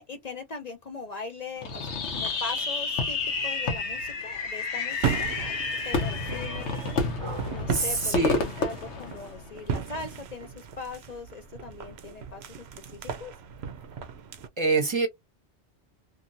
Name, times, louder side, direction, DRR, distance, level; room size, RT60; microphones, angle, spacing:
voice 1, 0.0-7.2 7.5-12.6 12.9-13.3, left 3 dB, 45° left, 0.6 m, -40 dB
Fireworks, 1.6-9.7, left 4 dB, 75° left, 1.1 m, -30 dB
sound 1, 4.9-14.5, right 7 dB, 70° right, 0.8 m, -36 dB
voice 2, 7.2-8.4 14.6-15.1, right 3 dB, 25° right, 1.0 m, -26 dB
2.7 x 2.7 x 2.6 m
omnidirectional pair, 1.2 m